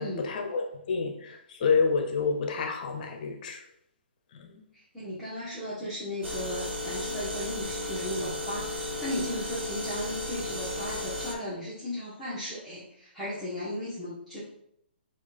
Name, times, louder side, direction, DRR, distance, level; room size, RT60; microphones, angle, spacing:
voice 1, 0.0-3.6 4.4-4.6, left 5 dB, 45° left, 4 dB, 0.7 m, -29 dB
voice 2, 4.9-14.4, left 1 dB, 5° left, -12 dB, 1.2 m, -36 dB
sound 1, 6.2-11.4, left 1 dB, 85° right, 1.1 m, -34 dB
4.8 x 2.5 x 4.0 m, 0.74 s
hypercardioid pair, 150°, 6 cm